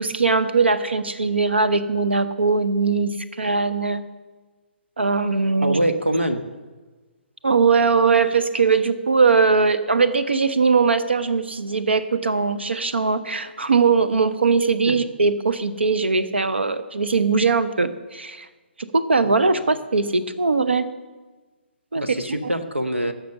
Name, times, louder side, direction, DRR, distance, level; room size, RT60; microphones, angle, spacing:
voice 1, 0.0-4.0 5.0-5.8 7.4-18.5 18.8-20.9 21.9-22.0 22.4-22.5, right 4 dB, 70° right, 13 dB, 0.9 m, -20 dB
voice 2, 5.6-6.4 14.9-15.0 21.9-23.1, right 1 dB, 85° right, 7 dB, 1.2 m, -24 dB
15.5 x 6.2 x 6.8 m, 1.3 s
figure-of-eight pair, 130°, 6 cm